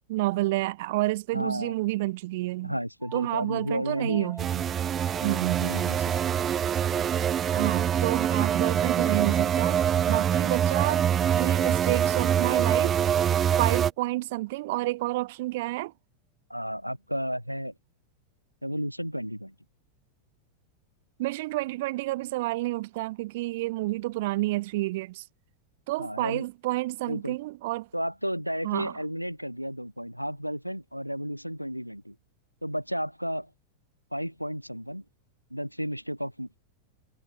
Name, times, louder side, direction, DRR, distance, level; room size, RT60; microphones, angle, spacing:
voice 1, 0.1-2.8 3.1-4.6 5.2-5.7 7.5-11.0 11.3-13.0 13.6-15.9 21.2-25.2 25.9-27.9 28.6-28.9, right 19 dB, 50° right, 1.6 m, -29 dB
voice 2, 1.3-1.8 2.6-4.3 5.2-6.0 16.5-17.7 18.6-19.5 26.0-26.5 27.1-27.4 27.9-32.1 32.6-33.5 34.1-35.0 35.5-36.6, equal, 90° right, 1.0 m, -33 dB
sound 1, 3.0-12.4, right 2 dB, 5° right, 5.1 m, -47 dB
sound 2, 4.4-13.9, right 9 dB, 25° right, 1.0 m, -25 dB
figure-of-eight pair, 90°, 0 cm